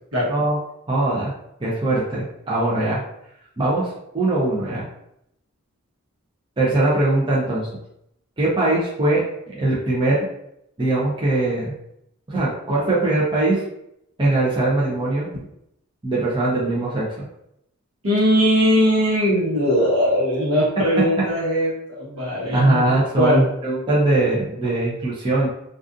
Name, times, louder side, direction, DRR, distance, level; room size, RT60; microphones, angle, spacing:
voice 1, 0.9-1.3 1.6-3.0 3.6-4.8 6.6-7.7 8.4-10.2 10.8-11.7 12.3-13.6 14.2-15.3 16.0-17.2 22.5-25.5, right 2 dB, 20° right, -7 dB, 0.5 m, -21 dB
voice 2, 18.0-22.8 23.2-23.5, equal, 70° right, -6 dB, 1.1 m, -19 dB
2.4 x 2.4 x 2.4 m, 0.79 s
head